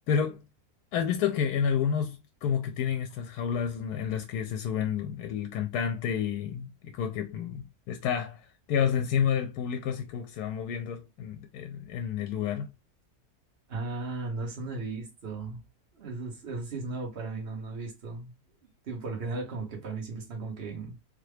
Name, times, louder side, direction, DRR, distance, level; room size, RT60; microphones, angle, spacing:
voice 1, 0.1-0.4 0.9-8.4 8.7-12.7, left 8 dB, 85° left, 1.1 m, -30 dB
voice 2, 13.7-15.6 15.9-18.4 18.8-21.0, right 3 dB, 45° right, 1.4 m, -36 dB
3.6 x 2.2 x 3.3 m
omnidirectional pair, 1.6 m